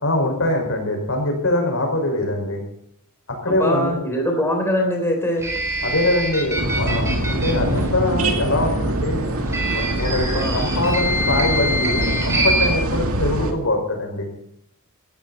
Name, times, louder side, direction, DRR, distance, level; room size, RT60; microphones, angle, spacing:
voice 1, 0.0-2.6 3.4-4.0 5.8-9.3 9.7-14.3, left 1 dB, 65° left, 3 dB, 5.3 m, -23 dB
voice 2, 3.5-5.5 10.3-10.6, equal, 10° left, 2 dB, 3.4 m, -23 dB
sound 1, 5.4-7.9 9.4-12.7, right 1 dB, 15° right, 4.1 m, -25 dB
sound 2, 6.6-13.5, right 1 dB, 75° right, 2.5 m, -24 dB
17.0 x 14.0 x 4.2 m, 0.75 s
head